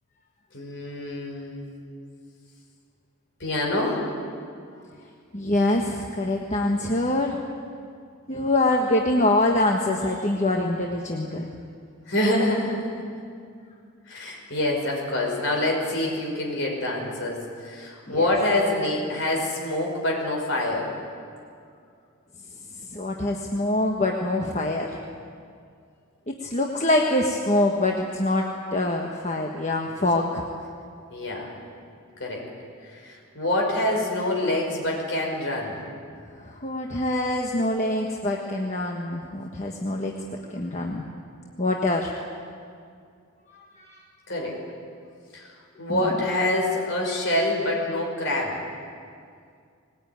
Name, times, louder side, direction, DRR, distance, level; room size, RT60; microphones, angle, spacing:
voice 1, 0.5-1.7 3.4-4.0 12.1-13.0 14.1-20.9 29.9-30.0 31.1-31.5 32.2-32.4 32.9-35.8 44.3-44.6 45.3-45.5 45.8-48.6, left 1 dB, 55° left, 0 dB, 5.5 m, -26 dB
voice 2, 5.3-7.4 8.3-11.5 18.1-18.3 22.9-24.9 26.3-30.5 36.4-40.1 40.5-41.0 41.6-42.1 43.5-44.0 45.9-46.1, left 1 dB, 30° left, 1 dB, 1.3 m, -25 dB
20.0 x 19.0 x 9.4 m, 2.3 s
head